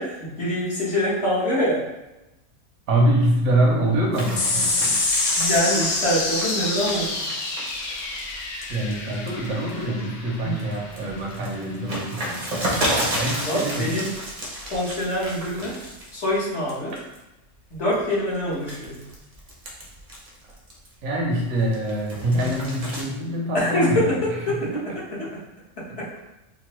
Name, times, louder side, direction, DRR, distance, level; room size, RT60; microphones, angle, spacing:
voice 1, 0.0-1.8 5.4-7.1 10.4-10.6 13.4-14.1 14.7-15.8 16.1-16.9 17.7-19.1 23.5-24.2 24.5-24.6 25.8-26.1, equal, 55° left, -8 dB, 1.4 m, -24 dB
voice 2, 2.9-5.0 8.7-14.0 21.0-24.2 24.6-24.8 25.9-26.0, right 1 dB, 70° right, -1 dB, 1.2 m, -25 dB
sound 1, 4.1-10.0 10.5-16.4 16.7-17.2 17.7-21.0 21.5-23.0, right 1 dB, 35° right, 0.6 m, -32 dB
sound 2, 4.4-11.1, left 3 dB, 90° left, 1.1 m, -27 dB
4.3 x 2.1 x 3.0 m, 0.97 s
omnidirectional pair, 1.5 m